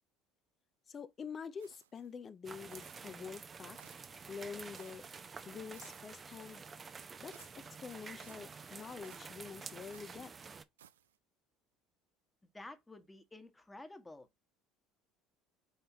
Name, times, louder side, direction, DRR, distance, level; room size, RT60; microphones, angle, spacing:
voice 1, 0.9-3.8 4.3-5.1 5.5-6.6 7.2-10.3, left 6 dB, 35° left, 0.6 m, -47 dB
sound 1, 1.6-2.1 2.7-3.2 3.8-4.2 4.7-5.2 5.7-6.2 7.3-7.7 8.2-8.5 9.0-9.4 9.9-10.3 10.8-11.2, right 10 dB, 80° right, 0.3 m, -62 dB
sound 2, 2.4-10.6, right 5 dB, 30° right, 0.6 m, -50 dB
voice 2, 12.4-14.3, left 2 dB, 15° left, 1.3 m, -51 dB
5.7 x 3.4 x 2.8 m
figure-of-eight pair, 65°, 0 cm